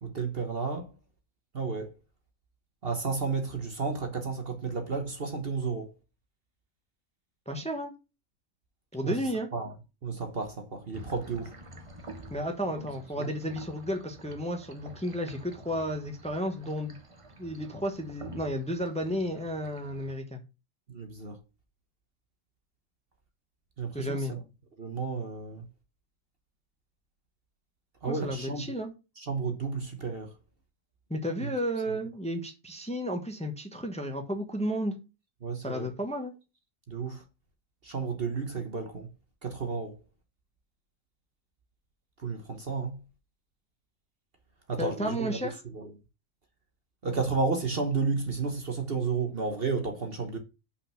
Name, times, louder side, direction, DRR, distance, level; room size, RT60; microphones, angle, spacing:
voice 1, 0.0-0.9 1.5-1.9 2.8-5.9 9.0-9.2 9.5-9.7 10.0-11.5 12.8-12.9 13.2-13.3 20.9-21.4 23.8-24.4 24.8-25.7 28.0-28.6 29.2-30.3 31.4-31.5 35.4-35.9 36.9-37.2 37.8-39.1 39.4-40.0 42.2-43.0 44.7-45.4 45.7-45.9 47.0-50.4, right 4 dB, 45° right, 1.3 m, -32 dB
voice 2, 7.5-7.9 8.9-9.5 12.3-17.0 17.4-20.4 23.9-24.3 28.1-28.9 31.1-35.0 35.6-36.3 44.8-45.6, equal, 5° left, 1.1 m, -32 dB
sound 1, 10.9-20.1, right 1 dB, 25° right, 0.9 m, -48 dB
5.8 x 5.1 x 5.7 m
omnidirectional pair, 1.5 m